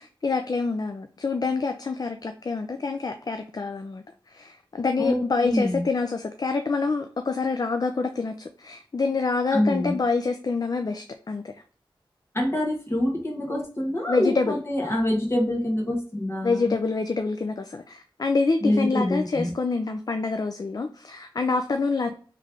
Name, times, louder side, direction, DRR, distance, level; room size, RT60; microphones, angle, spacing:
voice 1, 0.0-11.5 14.1-14.6 16.4-22.1, left 4 dB, 45° left, 7 dB, 0.4 m, -26 dB
voice 2, 5.0-5.9 9.5-10.0 12.3-16.7 18.6-19.5, left 1 dB, 30° left, 0 dB, 1.5 m, -26 dB
3.3 x 3.2 x 3.7 m, 0.42 s
cardioid pair, 50°, 9 cm